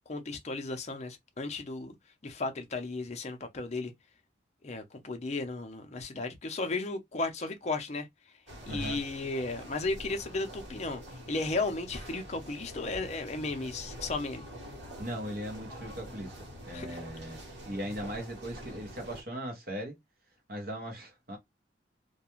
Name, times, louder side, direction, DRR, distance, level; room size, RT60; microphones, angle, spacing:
voice 1, 0.1-1.9 2.2-3.9 4.6-8.1 8.7-11.0 11.3-14.5 16.7-17.0, left 3 dB, 40° left, 0.5 m, -34 dB
sound 1, 8.5-19.2, equal, 85° right, 1.3 m, -45 dB
voice 2, 8.7-9.0 15.0-20.0 20.5-21.4, equal, 55° right, 0.9 m, -39 dB
2.4 x 2.2 x 2.9 m
head